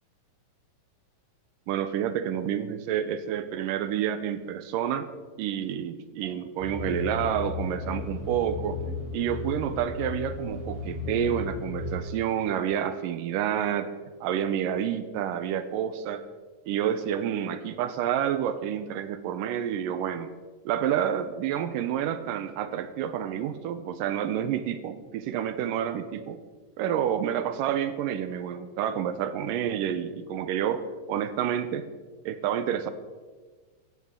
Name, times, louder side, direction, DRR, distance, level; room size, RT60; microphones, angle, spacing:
voice 1, 1.7-5.1 5.4-8.8 9.1-13.9 14.2-16.3 16.7-20.3 20.7-26.4 26.8-31.9 32.3-32.9, right 9 dB, 80° right, 11 dB, 2.3 m, -29 dB
sound 1, 6.6-12.0, left 3 dB, 15° right, 4.1 m, -35 dB
17.0 x 14.0 x 3.7 m, 1.4 s
omnidirectional pair, 4.0 m